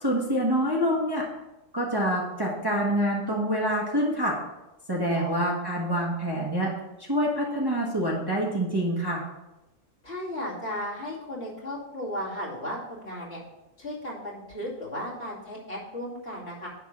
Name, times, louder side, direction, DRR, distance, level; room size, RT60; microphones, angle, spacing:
voice 1, 0.0-1.3 1.7-4.4 4.9-6.7 7.0-9.2, equal, 20° right, -3 dB, 1.2 m, -26 dB
voice 2, 5.1-5.5 10.0-13.4 13.8-16.7, left 1 dB, 50° left, -6 dB, 2.7 m, -35 dB
10.5 x 3.7 x 5.9 m, 0.98 s
omnidirectional pair, 1.4 m